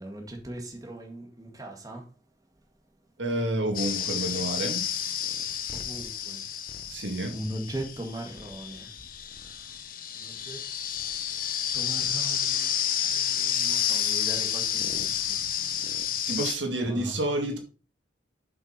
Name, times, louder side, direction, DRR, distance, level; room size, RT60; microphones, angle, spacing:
voice 1, 0.0-2.0 5.7-6.4 7.3-8.9 10.2-10.6 11.7-12.7 13.1-15.4 16.9-17.2, right 1 dB, 20° right, 1.8 m, -39 dB
voice 2, 3.2-4.8 6.9-7.3 16.3-17.6, right 1 dB, 80° right, 2.1 m, -29 dB
sound 1, 3.7-16.5, left 9 dB, 50° left, 1.1 m, -30 dB
7.5 x 5.8 x 5.4 m
head